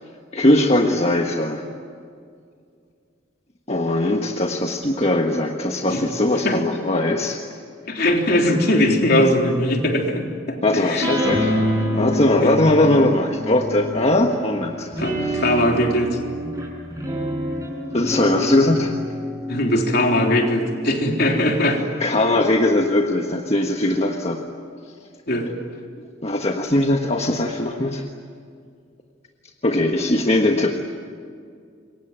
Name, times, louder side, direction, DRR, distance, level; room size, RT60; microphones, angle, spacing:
voice 1, 0.3-1.6 3.7-7.4 10.6-11.5 11.9-14.9 15.2-15.4 17.9-19.0 22.0-24.4 26.0-28.0 29.6-30.8, left 1 dB, 35° left, 2 dB, 1.5 m, -20 dB
voice 2, 7.9-11.1 12.4-12.5 15.0-16.2 19.5-21.8 25.3-25.5, left 1 dB, 55° left, 2 dB, 3.7 m, -20 dB
sound 1, 11.0-14.4 14.9-21.7, equal, 15° right, 6.1 m, -27 dB
27.0 x 24.0 x 9.1 m, 2.2 s
head